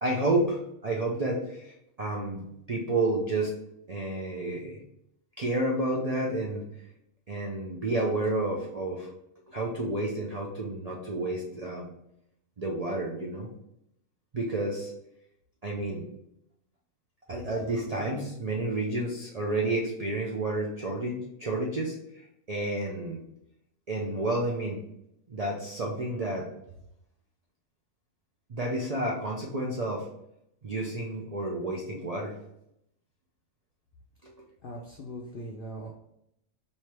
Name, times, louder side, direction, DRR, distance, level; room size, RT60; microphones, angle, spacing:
voice 1, 0.0-3.5 3.9-4.8 5.4-6.7 7.3-9.1 9.5-11.9 12.6-13.5 14.3-14.9 15.6-16.0 17.3-21.9 22.5-23.2 23.9-24.8 25.3-26.5 28.5-30.0 30.6-32.3 34.2-34.5, right 2 dB, 65° right, -1 dB, 0.3 m, -30 dB
voice 2, 34.6-36.0, equal, 70° left, -1 dB, 0.5 m, -40 dB
3.2 x 2.8 x 4.3 m, 0.77 s
omnidirectional pair, 1.5 m